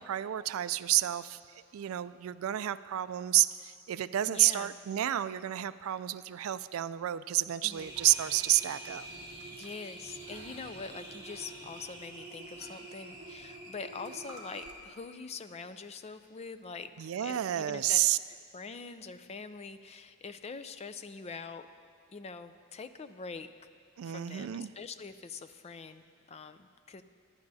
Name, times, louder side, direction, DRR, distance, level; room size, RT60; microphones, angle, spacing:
voice 1, 0.0-9.1 17.0-18.2 24.0-24.7, right 14 dB, 80° right, 15 dB, 0.3 m, -30 dB
voice 2, 4.3-4.7 7.6-7.9 9.5-16.9 17.2-18.0 18.5-21.7 22.1-23.5 24.0-27.0, left 4 dB, 30° left, 10 dB, 0.4 m, -44 dB
sound 1, 7.7-14.7, right 1 dB, 20° right, 2.2 m, -46 dB
24.0 x 10.5 x 2.7 m, 2.2 s
head